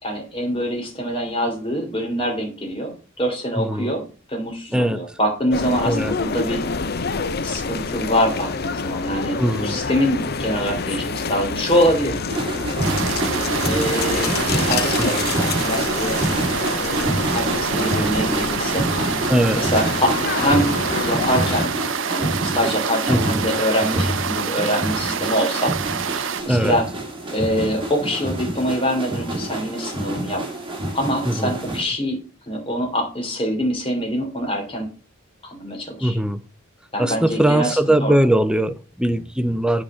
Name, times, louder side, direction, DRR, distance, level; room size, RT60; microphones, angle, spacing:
voice 1, 0.0-4.0 4.3-6.6 7.4-12.2 13.6-16.2 16.7-18.8 19.5-20.7 21.0-21.7 22.1-25.8 26.1-26.8 27.3-30.4 30.9-32.2 32.5-34.9 35.4-36.2 36.9-38.1, equal, 25° left, 3.2 m, -24 dB
voice 2, 3.6-3.9 4.7-5.2 5.8-6.2 9.4-9.8 15.0-15.3 19.3-19.6 23.1-23.4 23.9-24.0 26.5-26.8 31.2-31.6 36.0-36.4 37.0-39.8, right 1 dB, 5° right, 0.5 m, -20 dB
sound 1, 5.5-21.7, left 4 dB, 50° left, 0.7 m, -27 dB
sound 2, 12.3-31.8, right 1 dB, 25° right, 2.5 m, -27 dB
sound 3, 12.8-26.4, right 7 dB, 65° right, 0.6 m, -27 dB
8.5 x 5.0 x 7.4 m
head